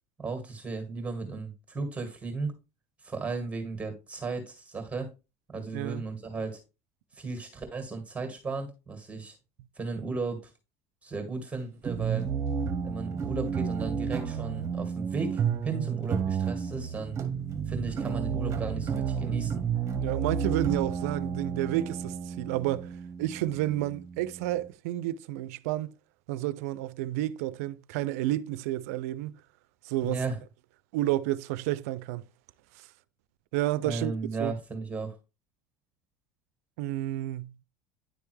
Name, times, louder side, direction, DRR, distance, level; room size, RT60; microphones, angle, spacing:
voice 1, 0.2-2.5 3.0-5.1 5.5-6.6 7.1-9.4 9.8-10.5 11.0-12.3 12.8-17.2 17.7-19.6 30.0-30.4 33.8-35.1, right 3 dB, 15° right, 1.9 m, -35 dB
voice 2, 5.7-6.0 20.0-25.9 26.3-29.3 29.8-30.2 30.9-32.2 33.5-34.1 34.4-34.5 36.8-37.5, right 15 dB, 85° right, 0.4 m, -30 dB
sound 1, 11.9-24.7, right 7 dB, 40° right, 1.0 m, -31 dB
10.0 x 3.5 x 3.2 m
supercardioid pair, 110°, 8 cm